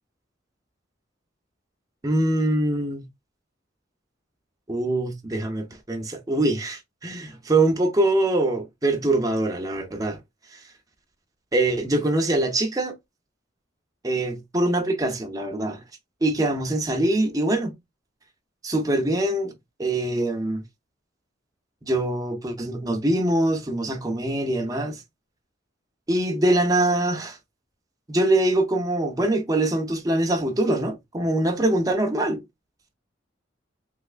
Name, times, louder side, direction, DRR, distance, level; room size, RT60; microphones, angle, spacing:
voice 1, 2.0-3.0 4.7-10.2 11.5-12.9 14.0-15.8 16.2-17.7 18.6-19.5 19.8-20.6 21.8-25.0 26.1-27.4 28.1-32.4, right 1 dB, 20° right, 0.6 m, -23 dB
3.3 x 2.9 x 2.4 m
head